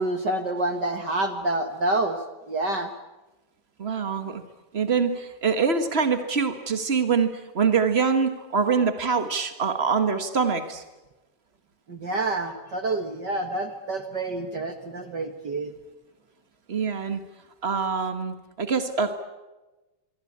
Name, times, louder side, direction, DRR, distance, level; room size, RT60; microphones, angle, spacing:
voice 1, 0.0-2.2 2.5-2.9 11.9-15.7, right 2 dB, 50° right, 7 dB, 1.3 m, -28 dB
voice 2, 3.8-4.4 4.7-10.8 16.7-17.2 17.6-19.1, right 5 dB, 85° right, 8 dB, 0.5 m, -24 dB
25.5 x 24.5 x 8.7 m, 1.1 s
omnidirectional pair, 3.8 m